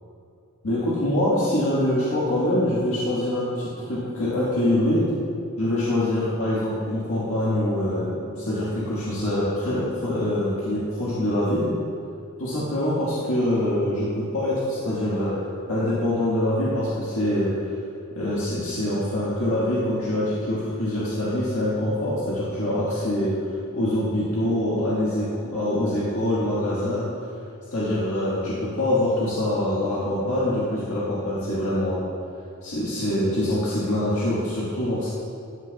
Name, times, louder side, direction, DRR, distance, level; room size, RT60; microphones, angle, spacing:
voice 1, 0.6-5.1 5.6-11.7 12.4-15.3 15.7-17.5 18.1-23.3 23.7-27.1 27.7-32.1 32.6-35.1, left 1 dB, 80° left, -9 dB, 1.6 m, -24 dB
13.5 x 6.6 x 2.3 m, 2.6 s
head